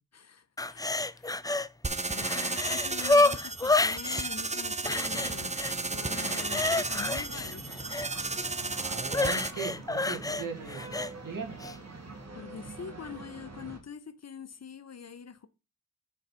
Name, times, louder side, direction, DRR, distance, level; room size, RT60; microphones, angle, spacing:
voice 1, 0.1-1.5 2.1-5.6 5.9-7.8 12.3-15.5, left 6 dB, 55° left, 0.8 m, -44 dB
sound 1, 0.6-1.7 2.0-4.3 4.9-5.7 6.1-8.1 9.1-11.1 11.6-11.7, left 2 dB, 10° left, 0.4 m, -29 dB
sound 2, 1.8-9.5, right 3 dB, 20° right, 0.8 m, -34 dB
sound 3, 4.8-13.8, right 3 dB, 50° right, 2.4 m, -45 dB
voice 2, 8.5-11.0 11.2-11.6, right 5 dB, 75° right, 2.3 m, -39 dB
7.0 x 5.6 x 5.1 m
cardioid pair, 45°, 33 cm